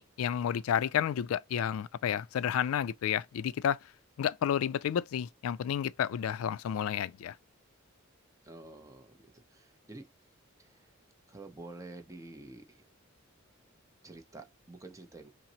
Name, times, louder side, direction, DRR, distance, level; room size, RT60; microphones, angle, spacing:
voice 1, 0.0-3.8 4.2-7.4, left 9 dB, 75° left, 0.3 m, -31 dB
voice 2, 8.4-10.1 10.6-10.9 11.3-12.9 14.0-15.3, right 2 dB, 15° right, 0.6 m, -49 dB
5.7 x 2.0 x 2.7 m
head